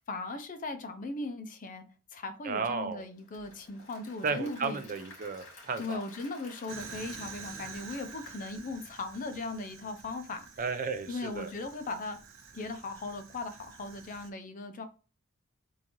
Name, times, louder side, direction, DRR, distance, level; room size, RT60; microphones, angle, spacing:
voice 1, 0.0-1.8 2.1-4.8 5.8-10.4 11.1-12.2 12.5-14.9, left 3 dB, 40° left, 0.5 m, -38 dB
voice 2, 2.4-3.0 4.2-6.0 10.6-11.5, right 5 dB, 40° right, 0.4 m, -33 dB
Applause / Crowd, 3.0-9.1, left 2 dB, 65° left, 1.8 m, -54 dB
Fire, 6.7-14.3, right 5 dB, 70° right, 0.7 m, -48 dB
3.7 x 2.6 x 2.9 m
head